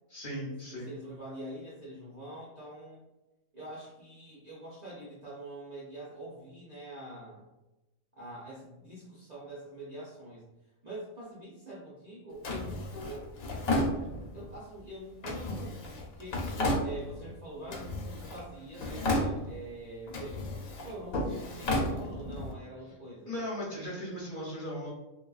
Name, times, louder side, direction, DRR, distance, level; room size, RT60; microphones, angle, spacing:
voice 1, 0.1-0.9 23.3-24.9, equal, 50° left, -6 dB, 0.7 m, -37 dB
voice 2, 0.6-3.0 3.5-7.5 8.2-10.5 10.8-13.3 14.3-16.4 16.8-20.5 20.8-23.4, right 1 dB, 55° right, -8 dB, 0.5 m, -45 dB
Drawer open or close, 12.4-14.5 15.2-17.3 17.7-18.5 18.7-19.7 20.1-22.5, left 1 dB, 90° left, 1.0 m, -33 dB
2.9 x 2.2 x 2.3 m, 1.0 s
omnidirectional pair, 1.4 m